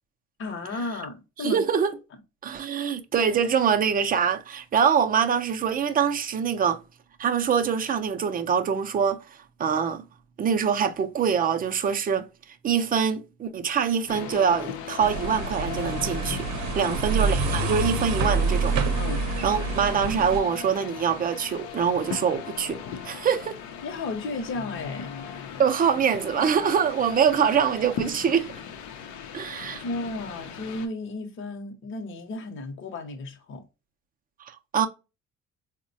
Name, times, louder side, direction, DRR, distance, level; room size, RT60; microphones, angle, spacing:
voice 1, 0.4-1.6 16.8-17.0 19.0-19.2 23.8-25.1 25.3-25.4 29.8-33.6, left 2 dB, 45° left, 0.8 m, -34 dB
voice 2, 1.4-1.9 2.4-6.8 7.2-10.0 10.4-12.3 12.6-16.5 16.7-18.8 19.4-22.8 23.0-23.6 25.6-28.5 29.3-29.8 34.4-34.9, right 7 dB, 30° right, 0.4 m, -24 dB
sound 1, 14.1-30.9, left 7 dB, 90° left, 0.6 m, -38 dB
sound 2, 15.0-20.4, right 4 dB, 75° right, 0.7 m, -27 dB
3.7 x 2.1 x 2.6 m
cardioid pair, 120°, 29 cm